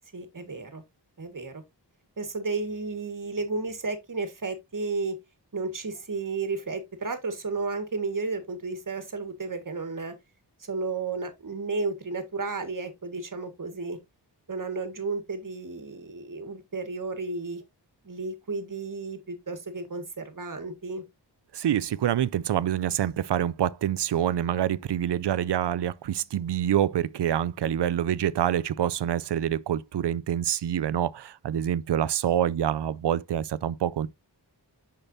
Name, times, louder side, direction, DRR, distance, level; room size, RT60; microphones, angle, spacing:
voice 1, 0.1-0.8 1.2-1.6 2.2-5.2 5.5-10.1 10.6-14.0 14.5-17.6 18.0-21.0, right 3 dB, 50° right, 1.7 m, -33 dB
voice 2, 21.5-34.1, right 10 dB, 75° right, 0.5 m, -26 dB
6.7 x 5.9 x 2.6 m
wide cardioid pair, 70°, 42 cm